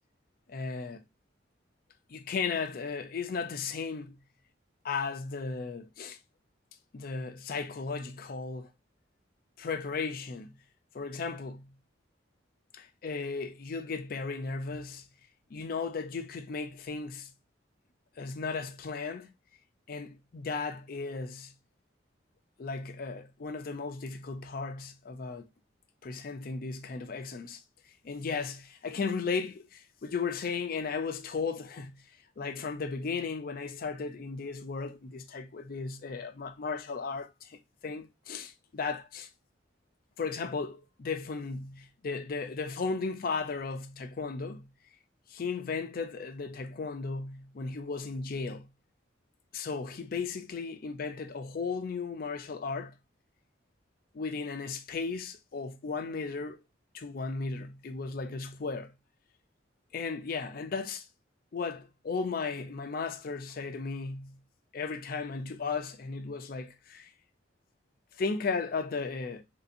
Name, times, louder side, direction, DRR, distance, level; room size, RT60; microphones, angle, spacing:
voice 1, 0.5-1.0 2.1-4.2 4.8-6.2 6.9-8.7 9.6-10.5 10.9-11.7 12.7-15.1 15.5-17.3 18.2-19.3 19.9-21.5 22.6-25.5 26.0-27.6 28.0-32.0 32.4-39.3 40.2-44.7 45.3-48.7 49.5-52.9 54.1-56.6 56.9-58.9 59.9-61.1 61.5-64.4 64.7-67.1 68.2-69.4, left 4 dB, 50° left, 0.4 m, -35 dB
3.3 x 2.7 x 2.5 m
head